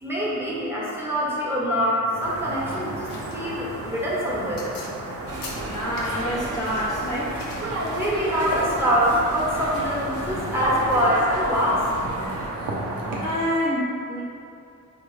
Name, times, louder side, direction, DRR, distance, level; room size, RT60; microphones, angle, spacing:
voice 1, 0.0-4.7 7.9-11.9, equal, 5° right, -7 dB, 1.0 m, -24 dB
sound 1, 2.1-13.3, right 2 dB, 90° right, 0.6 m, -34 dB
sound 2, 2.2-10.8, left 3 dB, 80° left, 0.5 m, -41 dB
sound 3, 5.3-12.5, right 1 dB, 45° right, 0.7 m, -32 dB
voice 2, 5.7-7.4 13.2-14.2, equal, 10° left, -8 dB, 0.6 m, -27 dB
4.3 x 2.4 x 3.1 m, 2.5 s
cardioid pair, 65°, 34 cm